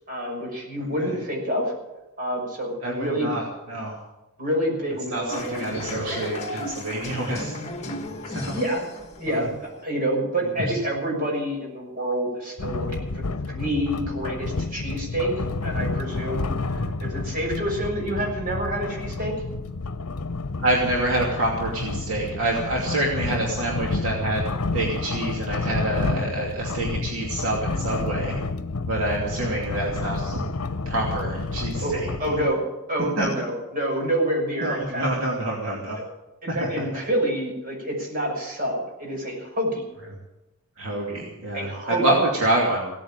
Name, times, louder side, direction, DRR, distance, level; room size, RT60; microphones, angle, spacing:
voice 1, 0.1-1.7 2.2-3.3 4.4-6.3 8.5-8.8 9.2-9.5 9.8-19.3 31.8-32.6 32.9-35.0 36.4-39.8 41.5-42.1, right 1 dB, 40° right, -1 dB, 6.1 m, -28 dB
voice 2, 0.8-1.1 2.8-3.9 5.1-7.5 8.2-8.6 9.3-9.5 10.7-10.8 16.7-17.0 20.6-28.4 28.9-30.4 30.9-32.3 33.2-33.4 34.6-36.0 36.5-37.0 40.8-42.9, right 1 dB, 70° right, -2 dB, 2.7 m, -27 dB
sound 1, 5.3-9.8, left 1 dB, 30° left, 1.7 m, -35 dB
sound 2, 12.6-32.5, left 3 dB, 80° left, 0.8 m, -30 dB
17.0 x 8.9 x 8.9 m, 1.0 s
head